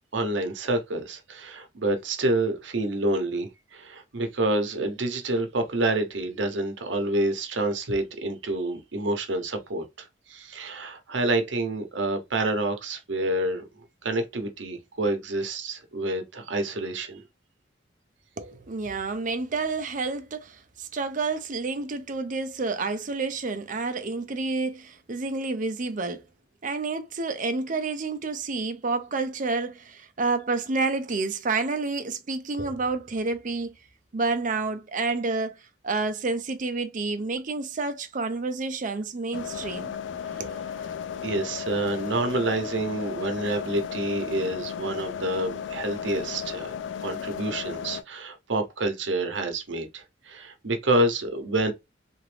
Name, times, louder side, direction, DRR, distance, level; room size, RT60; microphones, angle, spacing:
voice 1, 0.1-13.6 14.0-17.2 40.3-40.4 41.2-46.7 47.0-51.7, right 2 dB, 80° right, 0.8 m, -28 dB
voice 2, 18.4-26.2 26.6-33.7 34.1-39.9 40.4-40.6, right 3 dB, 45° right, 0.5 m, -29 dB
sound 1, 39.3-48.0, left 7 dB, 75° left, 0.4 m, -35 dB
2.9 x 2.5 x 3.2 m
head